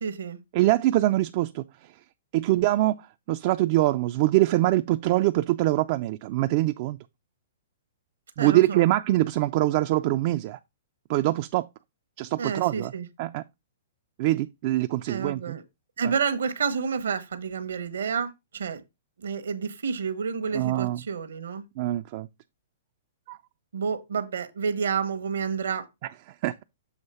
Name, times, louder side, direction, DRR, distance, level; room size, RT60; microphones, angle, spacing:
voice 1, 0.0-0.4 8.4-8.9 12.4-13.1 15.1-15.6 16.0-18.8 19.2-21.6 23.7-25.9, right 6 dB, 80° right, 1.0 m, -29 dB
voice 2, 0.5-1.6 2.3-7.0 8.4-10.6 11.1-11.7 12.2-12.9 13.2-13.4 14.2-15.6 16.0-16.1 20.5-21.0 21.8-22.3 23.3-23.4 26.4-26.6, right 16 dB, 45° right, 0.3 m, -24 dB
7.2 x 3.0 x 5.5 m
hypercardioid pair, 125°, 0 cm